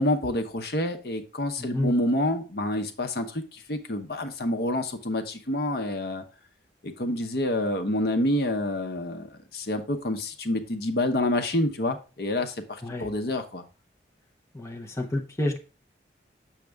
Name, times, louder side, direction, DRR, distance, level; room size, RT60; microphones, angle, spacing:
voice 1, 0.0-6.2 6.8-13.6, left 1 dB, 60° left, 6 dB, 0.9 m, -28 dB
voice 2, 1.6-1.9 12.8-13.1 14.5-15.6, left 1 dB, 15° left, 2 dB, 0.7 m, -29 dB
7.4 x 6.5 x 3.4 m, 0.34 s
head